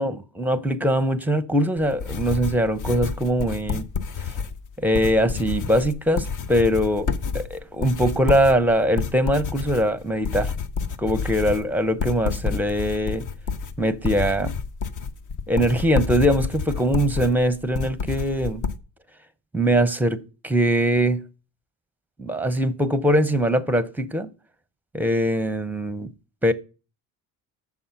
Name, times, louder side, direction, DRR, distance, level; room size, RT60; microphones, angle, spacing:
voice 1, 0.0-3.9 4.2-4.3 4.8-10.5 11.0-13.3 13.8-14.6 15.5-18.6 19.5-21.3 22.2-24.3 24.9-26.1 26.4-26.5, equal, 5° right, 0.7 m, -22 dB
sound 1, 1.8-18.8, left 5 dB, 40° left, 0.8 m, -29 dB
7.1 x 5.5 x 6.8 m
hypercardioid pair, 60°, 49 cm